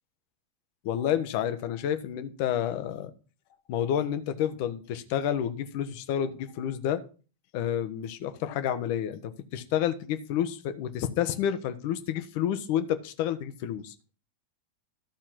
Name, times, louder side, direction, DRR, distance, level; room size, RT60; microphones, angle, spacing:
voice 1, 0.8-3.1 3.7-7.0 7.5-13.9, left 10 dB, 45° left, 11 dB, 1.0 m, -29 dB
13.0 x 4.4 x 6.1 m, 0.36 s
figure-of-eight pair, 90°, 0 cm